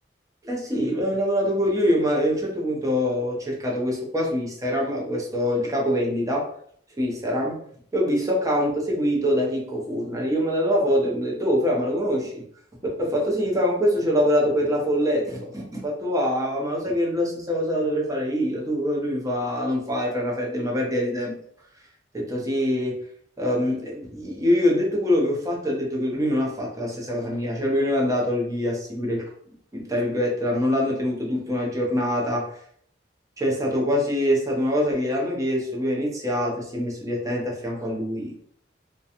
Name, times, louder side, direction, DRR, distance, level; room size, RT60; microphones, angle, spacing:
voice 1, 0.4-6.5 7.0-7.6 7.9-12.4 13.0-21.3 22.1-23.0 23.4-29.2 29.7-32.5 33.4-38.4, equal, 20° right, -2 dB, 0.6 m, -24 dB
2.4 x 2.2 x 2.8 m, 0.63 s
head